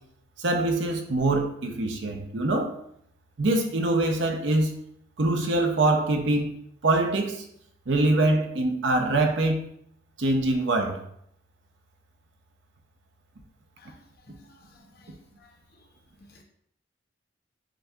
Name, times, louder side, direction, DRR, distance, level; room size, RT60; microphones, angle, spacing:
voice 1, 0.4-2.8 3.4-4.7 5.2-6.5 6.8-7.4 7.9-9.6 10.2-11.0, right 2 dB, 75° right, 0.7 m, -24 dB
voice 2, 13.8-13.9 14.4-14.6 14.9-15.1 15.4-15.5 16.3-16.4, left 3 dB, 55° left, 0.7 m, -56 dB
7.6 x 2.7 x 2.3 m
head